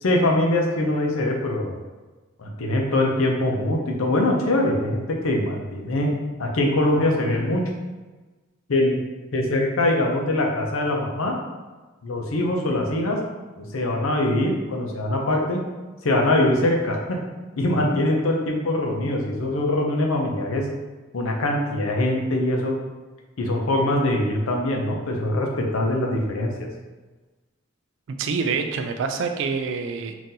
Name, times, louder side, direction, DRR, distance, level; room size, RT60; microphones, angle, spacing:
voice 1, 0.0-1.8 2.4-7.6 8.7-9.0 9.3-11.3 12.0-13.2 13.6-15.6 16.0-17.2 17.6-20.7 21.1-22.7 23.4-26.5, left 1 dB, 75° left, 1 dB, 0.6 m, -23 dB
voice 2, 28.1-30.1, right 5 dB, 60° right, 6 dB, 0.3 m, -26 dB
3.7 x 2.5 x 2.7 m, 1.2 s
head